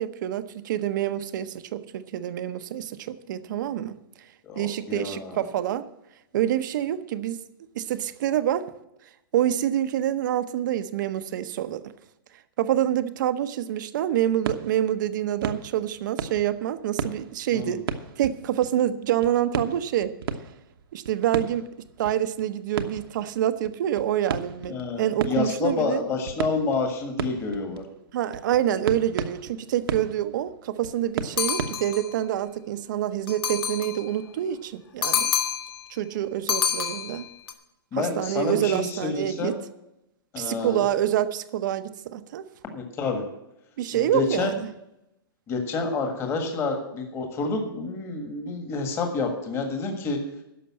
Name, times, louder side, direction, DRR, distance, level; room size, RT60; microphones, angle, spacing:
voice 1, 0.0-4.0 4.6-5.9 6.3-7.4 7.7-8.6 9.3-11.8 12.6-17.8 18.2-20.1 20.9-21.6 22.0-26.0 28.1-35.3 35.9-37.3 37.9-39.6 40.4-42.5 43.8-44.7, right 11 dB, 55° right, 12 dB, 0.8 m, -26 dB
voice 2, 4.4-5.5 17.5-17.8 24.7-27.8 37.9-39.6 40.3-40.8 42.7-43.2 43.9-44.5 45.5-50.2, left 4 dB, 20° left, 4 dB, 1.7 m, -28 dB
sound 1, 14.2-18.9 19.2-31.7, right 6 dB, 75° right, 1.1 m, -35 dB
sound 2, 31.4-32.1 33.3-34.0 35.0-35.8 36.5-37.5, left 8 dB, 75° left, 1.7 m, -27 dB
11.0 x 6.7 x 8.6 m, 0.87 s
hypercardioid pair, 155°, 12 cm